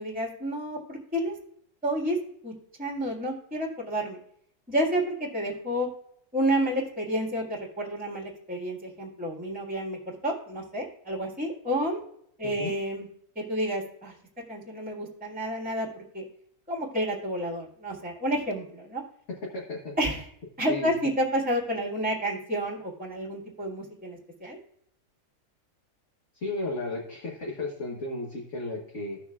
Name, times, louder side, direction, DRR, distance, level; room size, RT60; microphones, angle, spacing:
voice 1, 0.0-1.3 1.8-2.2 2.4-2.5 2.8-4.2 4.7-5.9 6.3-12.0 12.4-13.1 13.4-14.1 14.5-16.2 16.7-19.0 20.0-20.3 20.6-24.6, right 1 dB, 5° right, -3 dB, 1.9 m, -30 dB
voice 2, 19.3-19.9 20.7-20.9 26.3-29.2, left 2 dB, 55° left, -3 dB, 1.6 m, -34 dB
16.0 x 6.2 x 2.4 m, 0.69 s
omnidirectional pair, 1.5 m